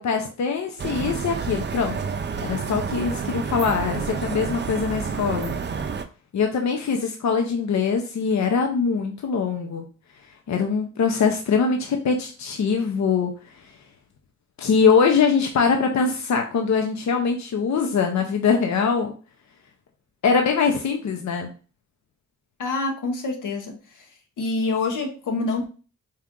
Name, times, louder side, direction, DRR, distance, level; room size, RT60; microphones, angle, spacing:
voice 1, 0.0-2.0 2.4-5.6 6.3-9.9 10.5-13.3 14.6-19.1 20.2-21.5, left 5 dB, 65° left, 0.6 m, -22 dB
sound 1, 0.8-6.0, right 5 dB, 35° right, 0.5 m, -29 dB
voice 2, 22.6-23.8 24.4-25.7, left 3 dB, 85° left, 1.0 m, -26 dB
4.3 x 2.5 x 3.6 m
cardioid pair, 85°, 30 cm